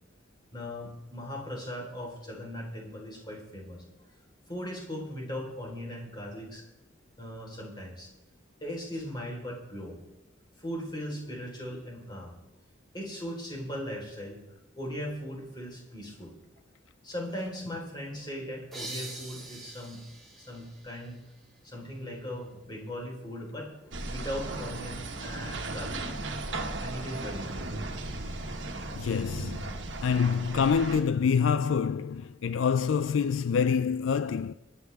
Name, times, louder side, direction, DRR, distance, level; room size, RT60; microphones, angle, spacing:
voice 1, 0.5-3.8 4.5-6.6 7.2-8.1 8.6-10.0 10.6-12.3 12.9-14.4 14.8-16.3 17.0-20.0 20.4-21.2 21.6-26.1 26.8-27.8, equal, 25° left, 4.1 m, -38 dB
sound 1, 18.7-22.1, right 2 dB, ahead, 4.0 m, -44 dB
sound 2, 23.9-31.0, right 2 dB, 70° right, 1.6 m, -36 dB
voice 2, 29.0-29.7 30.0-34.5, left 6 dB, 80° left, 0.4 m, -26 dB
24.0 x 10.0 x 3.5 m
head